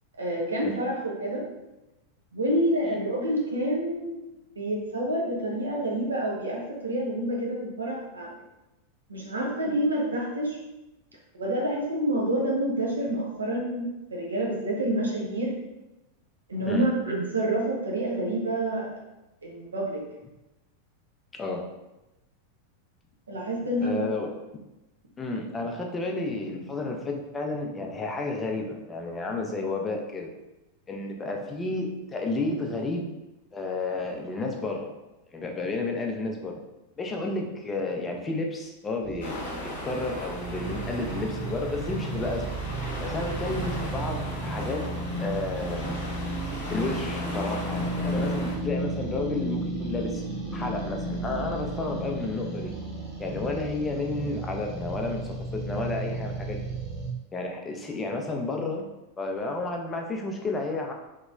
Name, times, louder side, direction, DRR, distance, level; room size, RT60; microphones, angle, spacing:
voice 1, 0.2-1.4 2.3-4.2 4.6-8.3 9.1-10.6 11.3-15.5 16.5-18.9 19.4-20.0 23.3-24.1, right 1 dB, 75° right, -2 dB, 0.7 m, -28 dB
voice 2, 23.8-24.3 25.2-30.3 30.9-33.1 33.5-35.0 35.3-36.6 37.0-42.5 43.0-44.8 45.2-46.0 46.7-50.2 50.5-52.7 53.2-56.6 57.3-58.9 59.2-60.9, left 2 dB, 15° left, 2 dB, 0.5 m, -31 dB
sound 1, 39.0-57.1, right 2 dB, 35° right, 1.1 m, -33 dB
sound 2, 39.2-48.6, left 1 dB, 60° left, 0.8 m, -38 dB
2.9 x 2.8 x 2.4 m, 0.98 s
figure-of-eight pair, 90°, 0 cm